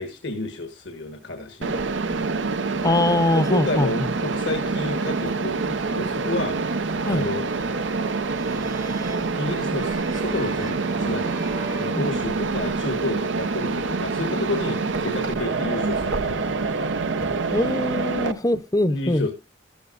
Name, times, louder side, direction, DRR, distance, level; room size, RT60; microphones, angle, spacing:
voice 1, 0.0-1.8 3.3-7.5 9.3-11.3 11.8-16.4 18.9-19.3, left 2 dB, 75° left, 6 dB, 1.3 m, -30 dB
Mechanisms, 1.6-18.3, right 3 dB, 90° right, 0.8 m, -26 dB
voice 2, 2.8-4.1 7.1-7.3 11.9-12.1 17.5-19.3, left 1 dB, 20° left, 13 dB, 0.6 m, -22 dB
sound 1, 8.3-12.9, right 2 dB, 20° right, 0.8 m, -40 dB
13.5 x 12.5 x 2.5 m, 0.25 s
head